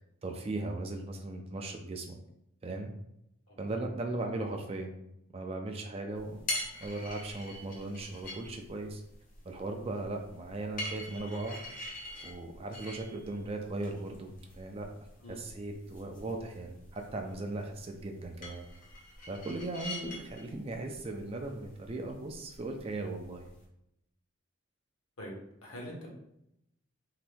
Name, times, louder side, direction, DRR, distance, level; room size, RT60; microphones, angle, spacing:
voice 1, 0.2-2.2 2.6-2.9 3.6-4.9 5.3-6.4 6.8-9.0 9.4-11.6 12.2-14.9 15.3-18.7 19.3-23.5, right 2 dB, 30° right, 4 dB, 0.3 m, -38 dB
sound 1, 6.1-23.6, left 1 dB, 40° left, 0.7 m, -45 dB
voice 2, 25.6-26.1, equal, 85° left, -2 dB, 1.0 m, -43 dB
2.8 x 2.6 x 3.3 m, 0.80 s
head